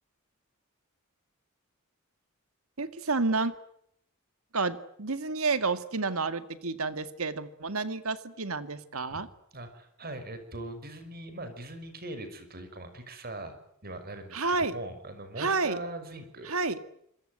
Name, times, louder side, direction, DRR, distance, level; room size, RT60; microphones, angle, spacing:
voice 1, 2.8-3.5 4.5-9.3 14.3-14.8 15.4-15.8 16.4-16.8, right 3 dB, 80° right, 12 dB, 2.1 m, -30 dB
voice 2, 9.5-13.6 13.8-16.5, right 2 dB, 45° right, 10 dB, 5.9 m, -41 dB
27.0 x 22.5 x 8.0 m, 0.73 s
head